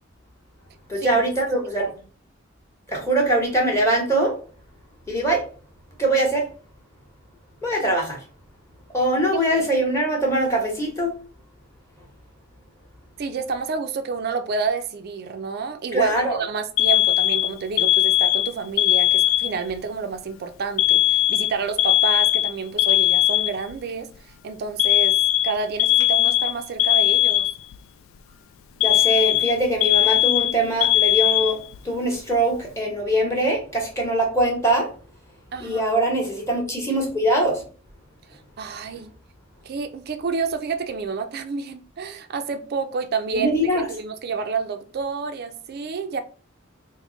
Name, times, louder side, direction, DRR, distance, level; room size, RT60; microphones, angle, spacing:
voice 1, 0.9-1.8 2.9-4.4 5.1-5.4 6.0-6.5 7.6-8.2 8.9-11.2 15.9-16.4 28.8-31.6 31.8-34.9 35.6-37.6 43.3-43.9, right 1 dB, 15° left, 1.0 m, -22 dB
voice 2, 9.3-9.7 13.2-27.5 35.5-35.8 38.3-39.1 39.6-46.2, right 5 dB, 50° right, 0.4 m, -29 dB
Alarm, 16.8-19.7 20.8-23.8 24.8-27.8 28.8-31.8, left 14 dB, 80° left, 0.3 m, -19 dB
3.5 x 2.1 x 3.7 m
head